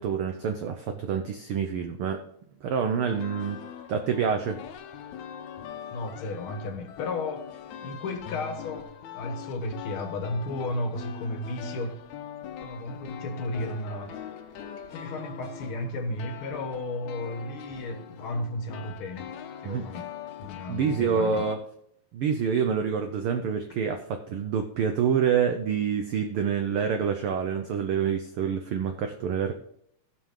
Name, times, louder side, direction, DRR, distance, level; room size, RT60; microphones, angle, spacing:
voice 1, 0.0-2.2 2.6-3.6 3.9-4.6 19.6-19.9 20.7-21.6 22.1-29.5, right 7 dB, 80° right, 6 dB, 1.2 m, -27 dB
sound 1, 3.1-21.6, left 8 dB, 85° left, 2.2 m, -42 dB
voice 2, 5.9-7.5 7.8-12.0 12.6-14.2 14.9-19.3 19.6-20.1 20.4-21.5, left 2 dB, 55° left, 4 dB, 1.7 m, -34 dB
16.0 x 5.6 x 3.7 m, 0.68 s
omnidirectional pair, 3.4 m